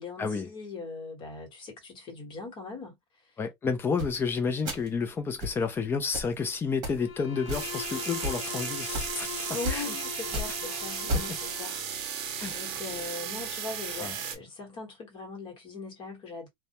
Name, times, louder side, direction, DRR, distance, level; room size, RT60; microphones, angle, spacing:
voice 1, 0.0-2.9 3.2-3.3 9.5-11.8 12.1-16.5, left 4 dB, 35° left, 1.2 m, -40 dB
voice 2, 3.4-9.3 9.7-9.8 12.4-12.5 14.0-14.1, left 5 dB, 15° left, 0.4 m, -30 dB
sound 1, 4.0-4.2 4.7-5.0 5.4-5.6 6.1-6.3 6.8-7.0 7.5-7.9 8.2-8.4 8.9-9.2 9.6-9.9 10.2-10.6 11.1-11.4, equal, 30° right, 1.1 m, -32 dB
Bowed string instrument, 7.0-11.9, left 8 dB, 60° left, 0.7 m, -40 dB
sound 2, 7.5-14.4, right 7 dB, 50° right, 0.7 m, -35 dB
2.2 x 2.1 x 2.8 m
supercardioid pair, 155°, 14 cm